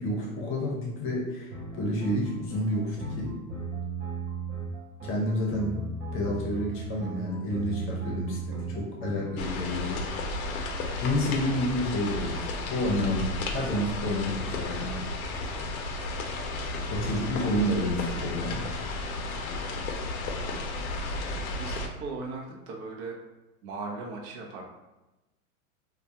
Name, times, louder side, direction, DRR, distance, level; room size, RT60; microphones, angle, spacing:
voice 1, 0.0-3.4 5.0-5.8 6.1-10.1 11.0-15.0 16.9-18.7, left 1 dB, 30° left, -2 dB, 0.7 m, -30 dB
sound 1, 1.5-9.4, right 3 dB, 20° right, 0.4 m, -36 dB
sound 2, 9.4-21.9, left 2 dB, 80° left, 0.6 m, -33 dB
voice 2, 21.6-23.2 23.6-24.6, right 3 dB, 50° right, 0 dB, 0.7 m, -38 dB
2.2 x 2.2 x 2.8 m, 1.0 s
hypercardioid pair, 115°, 43 cm